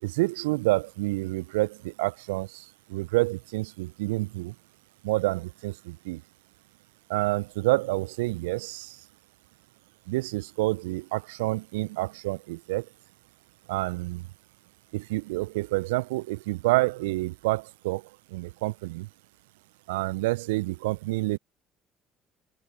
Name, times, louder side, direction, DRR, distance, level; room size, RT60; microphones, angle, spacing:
voice 1, 0.0-4.5 5.0-6.2 7.1-9.1 10.1-12.9 13.7-14.3 14.9-19.1 19.9-21.4, right 21 dB, 75° right, 0.8 m, -28 dB
figure-of-eight pair, 50°, 0 cm